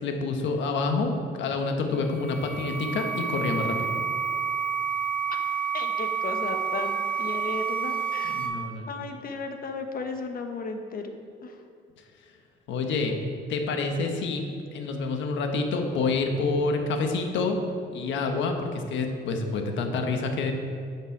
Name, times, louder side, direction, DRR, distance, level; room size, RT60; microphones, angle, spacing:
voice 1, 0.0-3.8 8.2-8.9 12.7-13.2 13.5-14.4 14.7-17.6 17.9-20.5, left 3 dB, 85° left, 4 dB, 1.2 m, -28 dB
sound 1, 2.0-8.5, right 6 dB, 5° left, 2.0 m, -29 dB
voice 2, 5.3-8.3 8.9-11.1 11.4-11.6, left 3 dB, 50° left, 5 dB, 1.1 m, -35 dB
11.0 x 6.6 x 4.6 m, 2.2 s
cardioid pair, 110°, 19 cm